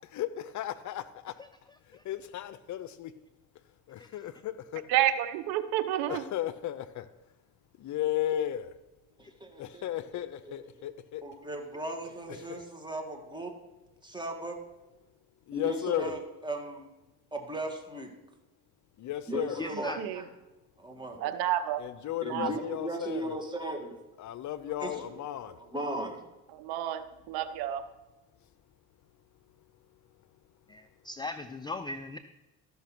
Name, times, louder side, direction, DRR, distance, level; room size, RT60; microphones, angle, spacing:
voice 1, 0.1-1.3 2.0-3.1 3.9-4.8 6.1-7.1 7.8-8.7 9.6-11.2 12.5-12.6 15.5-16.1 19.0-19.6 21.8-23.4 24.2-25.6, left 12 dB, 50° left, 15 dB, 0.7 m, -34 dB
voice 2, 4.9-6.2 20.0-20.2 21.2-21.8 22.3-22.5 26.5-27.9, right 12 dB, 80° right, 12 dB, 0.9 m, -29 dB
voice 3, 9.2-9.9 10.1-10.9 11.2-13.5 14.0-14.6 15.5-16.9 17.3-18.1 19.3-20.3 20.8-21.3 22.2-24.0 24.8-26.2, right 1 dB, 10° right, 3 dB, 1.9 m, -37 dB
voice 4, 19.6-20.0 30.7-32.2, left 3 dB, 10° left, 9 dB, 0.4 m, -38 dB
13.5 x 5.7 x 6.0 m, 1.0 s
supercardioid pair, 90°, 37 cm